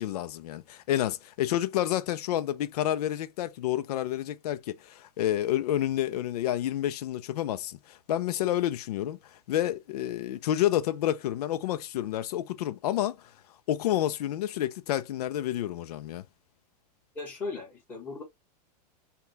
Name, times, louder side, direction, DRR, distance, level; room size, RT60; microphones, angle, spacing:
voice 1, 0.0-13.3 13.7-16.2, left 12 dB, 65° left, 0.5 m, -29 dB
voice 2, 17.1-18.2, left 3 dB, 10° left, 1.5 m, -37 dB
5.6 x 2.3 x 3.2 m
supercardioid pair, 180°, 21 cm